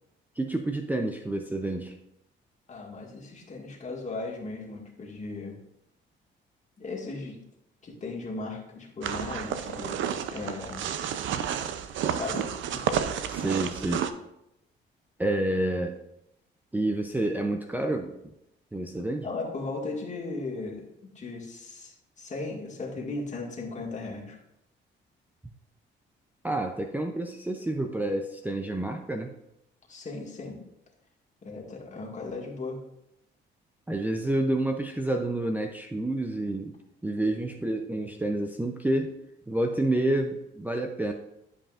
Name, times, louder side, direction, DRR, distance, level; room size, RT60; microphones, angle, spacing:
voice 1, 0.4-2.0 13.3-14.1 15.2-16.0 16.7-18.1 18.7-19.3 26.4-29.3 33.9-36.8 37.0-39.2 39.5-41.1, right 1 dB, 10° right, 3 dB, 0.5 m, -29 dB
voice 2, 2.7-5.6 6.8-7.4 7.8-10.9 12.1-12.9 19.2-20.8 21.2-24.4 29.9-30.6 31.4-32.8, left 3 dB, 35° left, -2 dB, 1.9 m, -37 dB
sound 1, 9.0-14.1, right 8 dB, 75° right, 0.6 m, -31 dB
11.0 x 5.2 x 2.5 m, 0.84 s
cardioid pair, 90°, 20 cm